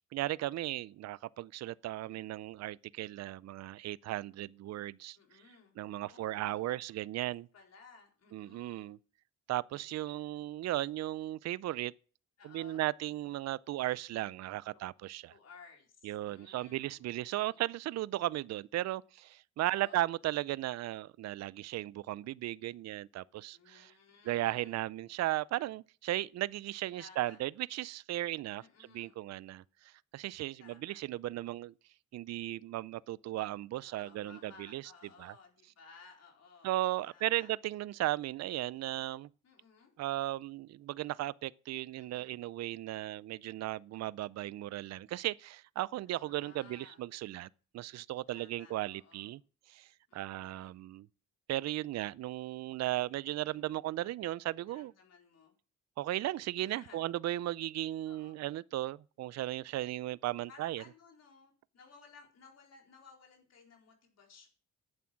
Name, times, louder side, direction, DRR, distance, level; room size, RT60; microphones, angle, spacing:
voice 1, 0.1-5.2 5.8-7.5 8.3-9.0 9.5-11.9 12.4-15.3 16.0-23.9 24.3-28.6 28.9-31.7 32.1-34.8 35.2-35.3 36.6-39.3 40.0-47.5 47.7-49.4 49.7-51.1 51.5-54.9 56.0-60.8, right 15 dB, 60° right, 0.5 m, -36 dB
voice 2, 2.0-2.3 5.2-6.8 7.2-7.3 7.5-8.9 9.7-10.3 12.4-12.8 14.7-14.8 15.3-17.6 19.6-20.0 23.5-24.8 27.0-27.4 28.6-29.2 30.6-31.0 33.8-36.7 37.1-37.5 39.4-39.9 42.0-42.4 46.1-47.0 48.3-49.3 50.1-50.7 53.4-53.7 54.7-55.5 56.6-57.1 58.1-58.4 60.5-64.5, left 5 dB, 55° left, 4.3 m, -58 dB
11.0 x 8.6 x 5.8 m
cardioid pair, 90°, 30 cm